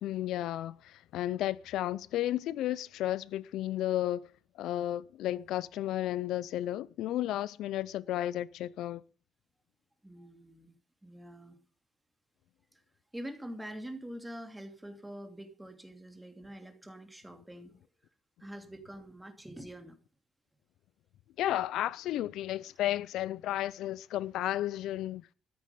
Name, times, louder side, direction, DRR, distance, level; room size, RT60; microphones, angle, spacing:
voice 1, 0.0-4.3 4.6-9.0 21.4-25.3, left 13 dB, 85° left, 0.5 m, -33 dB
voice 2, 10.0-10.8 11.0-11.6 12.7-12.8 13.1-17.7 18.4-20.0, equal, 10° right, 2.7 m, -45 dB
13.5 x 9.5 x 5.5 m
cardioid pair, 90°, 0 cm